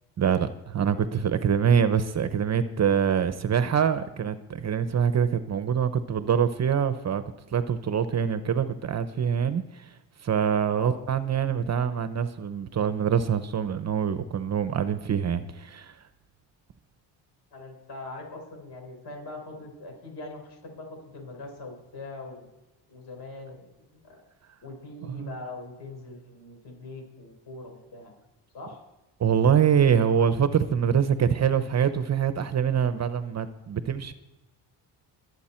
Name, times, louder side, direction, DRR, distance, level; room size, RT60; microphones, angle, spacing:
voice 1, 0.2-7.2 7.5-9.9 10.2-16.0 25.1-25.3 29.2-34.1, right 7 dB, 40° right, 11 dB, 0.8 m, -25 dB
voice 2, 10.6-11.1 17.5-22.5 22.9-24.2 24.6-28.1 28.5-28.8, left 2 dB, 65° left, 1 dB, 5.7 m, -42 dB
23.0 x 8.2 x 4.4 m, 1.0 s
cardioid pair, 125°, 43 cm